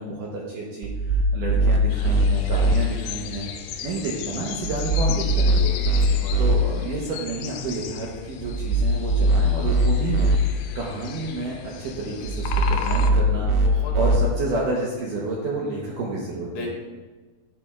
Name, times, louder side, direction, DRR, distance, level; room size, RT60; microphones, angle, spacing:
voice 1, 0.0-3.5 3.8-5.8 6.4-10.3 10.8-13.5 14.0-16.7, right 2 dB, 70° right, -3 dB, 2.1 m, -30 dB
sound 1, 0.8-2.8 4.6-6.6 8.4-10.4 12.3-14.2, right 1 dB, 85° right, 2.0 m, -21 dB
sound 2, 1.9-13.1, left 7 dB, 80° left, 2.7 m, -35 dB
voice 2, 5.3-6.8 13.6-14.1 16.5-16.7, left 3 dB, 65° left, -1 dB, 2.9 m, -39 dB
10.5 x 10.5 x 2.4 m, 1.3 s
omnidirectional pair, 4.8 m